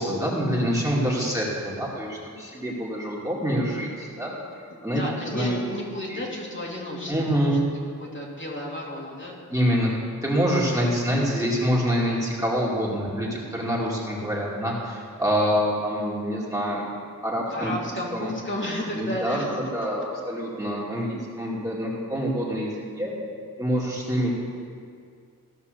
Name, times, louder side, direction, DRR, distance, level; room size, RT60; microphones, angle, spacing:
voice 1, 0.0-4.4 4.8-5.6 6.1-6.2 7.1-7.6 9.5-9.9 10.2-16.9 17.2-17.7 18.1-18.3 19.0-23.1 23.6-24.3, equal, 10° right, -5 dB, 2.3 m, -26 dB
voice 2, 4.7-7.6 8.0-9.4 17.5-19.6, left 1 dB, 35° left, -4 dB, 2.1 m, -33 dB
15.5 x 5.4 x 6.7 m, 2.3 s
wide cardioid pair, 90°, 33 cm